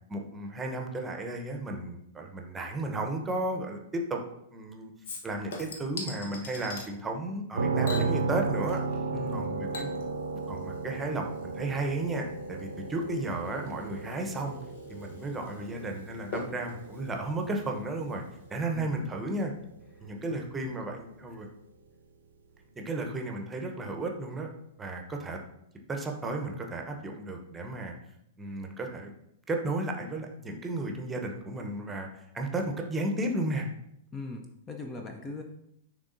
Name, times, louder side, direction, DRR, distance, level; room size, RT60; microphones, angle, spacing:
voice 1, 0.1-4.2 4.5-4.9 5.2-8.8 9.3-9.9 10.5-14.6 14.9-18.2 18.5-19.5 20.0-21.5 22.8-24.5 24.8-25.4 25.9-28.0 28.4-29.1 29.5-33.7, right 2 dB, 15° right, 2 dB, 0.9 m, -34 dB
Chink clink / Liquid, 5.0-6.9 7.8-9.0 9.3-18.3 18.6-18.7, left 2 dB, 55° left, 1.0 m, -44 dB
sound 1, 7.5-21.3, right 4 dB, 70° right, 0.5 m, -35 dB
voice 2, 9.1-9.6 18.7-19.0 20.0-20.8 21.3-21.4 34.1-35.4, left 3 dB, 20° left, 3 dB, 0.6 m, -41 dB
9.7 x 3.6 x 2.7 m, 0.75 s
figure-of-eight pair, 100°, 0 cm